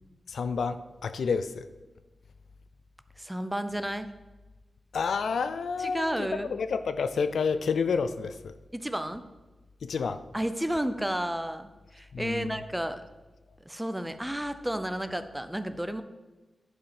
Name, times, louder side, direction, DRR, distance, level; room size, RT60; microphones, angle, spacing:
voice 1, 0.3-1.7 4.9-8.5 9.8-10.2 12.1-12.6, left 5 dB, 90° left, 11 dB, 0.4 m, -29 dB
voice 2, 3.2-4.1 5.8-6.5 8.7-9.2 10.3-13.0 13.7-16.0, right 1 dB, 5° right, 10 dB, 0.5 m, -32 dB
10.5 x 4.9 x 5.1 m, 1.2 s
wide cardioid pair, 115°, 0 cm